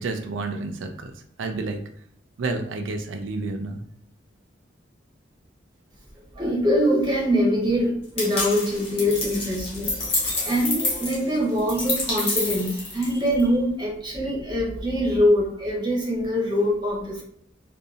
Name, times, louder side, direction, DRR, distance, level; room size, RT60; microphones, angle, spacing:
voice 1, 0.0-1.8 2.4-3.8, right 3 dB, 80° right, 5 dB, 0.4 m, -30 dB
voice 2, 6.3-17.2, equal, 25° right, -4 dB, 0.8 m, -23 dB
sound 1, 8.2-13.4, left 2 dB, 30° left, 0.7 m, -28 dB
2.7 x 2.2 x 2.4 m, 0.63 s
head